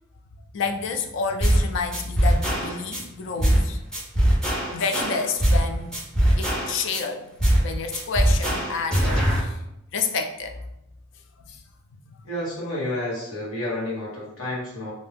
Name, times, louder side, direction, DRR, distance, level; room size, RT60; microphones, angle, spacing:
voice 1, 0.5-3.8 4.7-6.0 6.4-7.3 7.6-9.6 9.9-10.6 11.5-11.6 12.1-12.2, left 4 dB, 60° left, 5 dB, 0.3 m, -29 dB
sound 1, 1.4-1.7 1.9-3.0 3.4-3.7 3.9-5.7 5.9-7.0 7.4-7.7 7.9-9.4, right 1 dB, 5° left, 0.5 m, -21 dB
voice 2, 12.2-14.9, left 1 dB, 85° left, -6 dB, 1.2 m, -30 dB
2.6 x 2.2 x 3.4 m, 0.83 s
head